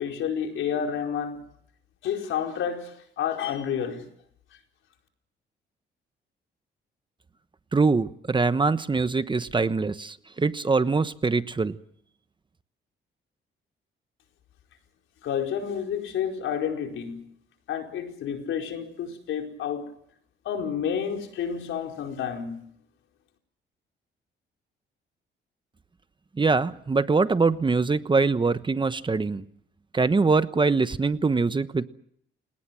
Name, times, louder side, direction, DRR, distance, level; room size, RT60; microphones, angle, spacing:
voice 1, 0.0-1.4 2.0-4.0 15.2-17.2 17.7-19.9 20.4-22.6, left 8 dB, 80° left, 4.8 m, -30 dB
voice 2, 7.7-11.8 26.4-29.4 29.9-31.9, right 4 dB, 25° right, 1.1 m, -23 dB
30.0 x 18.5 x 7.7 m
cardioid pair, 90°, 20 cm